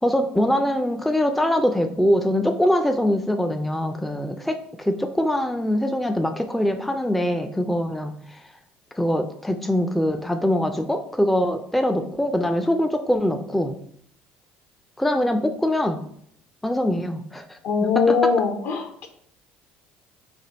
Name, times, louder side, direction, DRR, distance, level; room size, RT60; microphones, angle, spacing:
voice 1, 0.0-8.4 8.9-13.8 15.0-16.0 16.6-18.3, left 1 dB, 5° left, 6 dB, 0.3 m, -23 dB
voice 2, 17.6-19.1, left 5 dB, 60° left, 5 dB, 0.8 m, -21 dB
3.3 x 2.2 x 4.1 m, 0.66 s
supercardioid pair, 90°, 4 cm